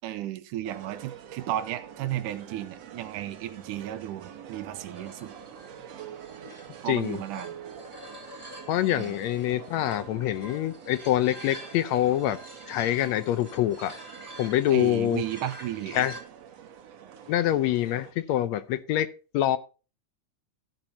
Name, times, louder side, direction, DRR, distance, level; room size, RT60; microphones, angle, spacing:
voice 1, 0.0-5.3 6.8-7.6 8.9-9.2 14.7-16.1, right 12 dB, 80° right, 2.2 m, -34 dB
sound 1, 0.6-18.1, right 8 dB, 65° right, 2.0 m, -46 dB
sound 2, 4.8-16.2, equal, 5° right, 3.6 m, -47 dB
voice 2, 6.9-7.2 8.7-12.4 12.7-13.9 14.4-15.2 15.9-16.1 17.3-19.1 19.3-19.6, left 13 dB, 75° left, 1.7 m, -25 dB
13.0 x 9.3 x 2.7 m
omnidirectional pair, 3.7 m